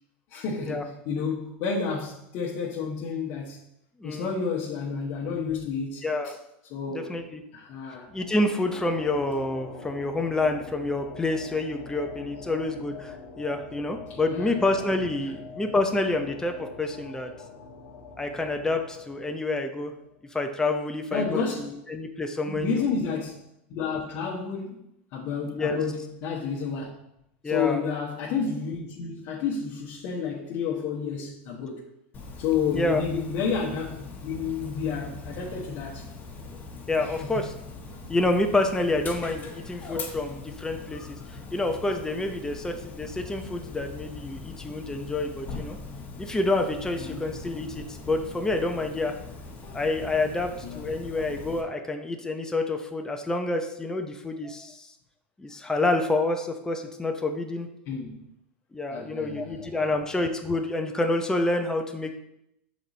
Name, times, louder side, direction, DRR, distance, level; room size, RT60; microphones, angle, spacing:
voice 1, 0.3-3.6 4.0-6.3 6.7-7.1 7.5-8.1 14.3-14.6 15.2-15.3 21.1-21.7 22.4-23.4 23.7-24.8 25.1-27.0 27.4-31.9 32.4-36.1 37.0-37.5 47.0-47.4 50.6-50.9 57.9-58.2 58.9-59.9, left 6 dB, 55° left, 1.0 m, -30 dB
voice 2, 6.0-6.4 6.9-7.4 8.1-17.3 18.2-19.9 20.3-22.8 25.5-25.8 27.4-27.8 32.7-33.0 36.9-37.5 38.1-45.8 46.2-49.2 49.7-54.9 55.4-57.7 58.7-62.1, left 2 dB, 10° left, 0.7 m, -28 dB
sound 1, 8.0-20.6, left 4 dB, 70° left, 1.3 m, -44 dB
Dog, 32.1-51.6, left 3 dB, 30° left, 1.4 m, -41 dB
5.9 x 4.1 x 4.0 m
hypercardioid pair, 100°, 6 cm